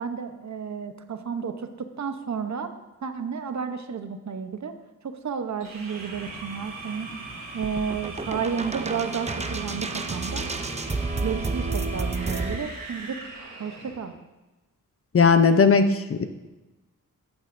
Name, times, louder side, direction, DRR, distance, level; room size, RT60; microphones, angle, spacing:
voice 1, 0.0-4.7 5.2-7.1 7.5-10.4 11.2-13.2 13.6-14.1, right 6 dB, 55° right, 8 dB, 0.9 m, -32 dB
sound 1, 5.6-14.1, right 3 dB, 85° right, 2.7 m, -40 dB
sound 2, 7.6-12.6, right 3 dB, 20° right, 0.6 m, -30 dB
voice 2, 15.1-16.2, left 5 dB, 45° left, 9 dB, 0.6 m, -18 dB
14.5 x 9.7 x 2.6 m, 1.1 s
wide cardioid pair, 100°, 32 cm